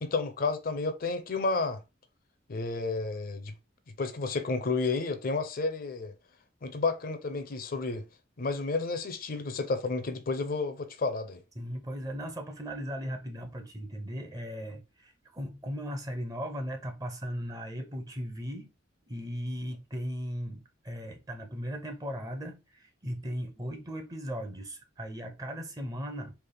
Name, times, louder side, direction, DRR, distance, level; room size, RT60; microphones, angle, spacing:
voice 1, 0.0-1.8 2.5-3.5 4.0-6.1 6.6-8.1 8.4-11.4, left 3 dB, 50° left, 0.5 m, -31 dB
voice 2, 11.6-18.7 19.1-26.4, equal, 20° right, 0.7 m, -37 dB
3.3 x 2.4 x 3.8 m
head